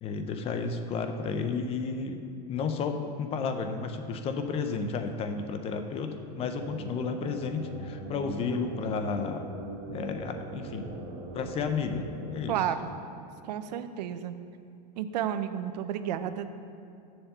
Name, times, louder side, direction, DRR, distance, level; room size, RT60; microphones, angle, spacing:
voice 1, 0.0-2.2 2.5-9.5 9.9-11.0 11.3-12.5, left 5 dB, 30° left, 7 dB, 0.6 m, -32 dB
sound 1, 6.2-13.7, right 3 dB, 55° right, 2.2 m, -42 dB
voice 2, 12.5-12.9 13.4-14.3 15.0-16.5, right 10 dB, 80° right, 11 dB, 0.7 m, -31 dB
7.1 x 7.0 x 6.6 m, 2.5 s
supercardioid pair, 145°, 21 cm